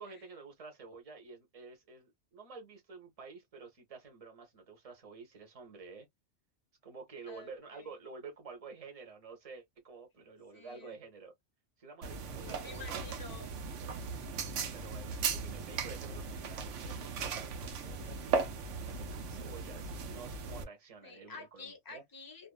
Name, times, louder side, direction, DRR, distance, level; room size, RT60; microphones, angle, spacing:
voice 1, 0.0-6.1 6.8-11.3 11.8-13.0 14.6-22.0, right 4 dB, 35° right, 0.9 m, -50 dB
voice 2, 7.3-7.9 10.5-11.0 12.3-13.5 21.0-22.5, left 5 dB, 25° left, 0.6 m, -50 dB
sound 1, 12.0-20.6, right 5 dB, 90° right, 1.0 m, -37 dB
2.5 x 2.2 x 2.3 m
omnidirectional pair, 1.2 m